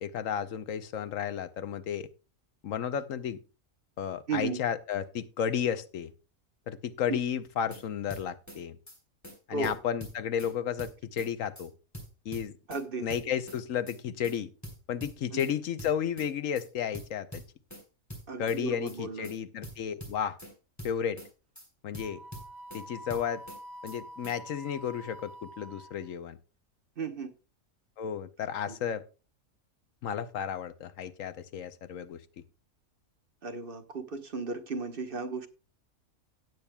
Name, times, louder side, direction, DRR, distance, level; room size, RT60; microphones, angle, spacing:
voice 1, 0.0-2.1 2.6-3.4 4.0-6.1 6.7-8.8 9.5-11.7 12.2-12.5 13.0-14.5 14.9-17.4 18.4-20.4 20.8-21.2 21.8-22.2 22.7-23.4 23.8-26.4 28.0-29.0 30.0-32.2, left 8 dB, 70° left, 12 dB, 1.1 m, -33 dB
voice 2, 4.3-4.6 7.1-7.2 9.5-9.8 12.7-13.1 15.3-15.4 18.3-19.3 27.0-27.3 28.7-28.8 33.4-35.5, right 4 dB, 45° right, 8 dB, 1.1 m, -35 dB
sound 1, 7.4-7.8 8.1-8.6 8.9-9.0 9.2-9.4 9.6-10.5 10.8-11.3 11.6-11.7 11.9-12.8 13.1-13.6 13.9-14.0 14.2-14.4 14.6-15.5 15.8-16.3 16.6-16.7 16.9-17.8 18.1-18.6 18.9-19.0 19.2-19.4 19.6-20.5 20.8-21.3 21.6-21.7 21.9-22.8 23.1-23.6 23.9-24.0 24.2-24.4, equal, 10° left, 4.0 m, -44 dB
Wind instrument woodwind instrument, 22.0-26.1, right 1 dB, 85° right, 2.0 m, -47 dB
17.0 x 8.7 x 2.2 m, 0.32 s
omnidirectional pair, 1.4 m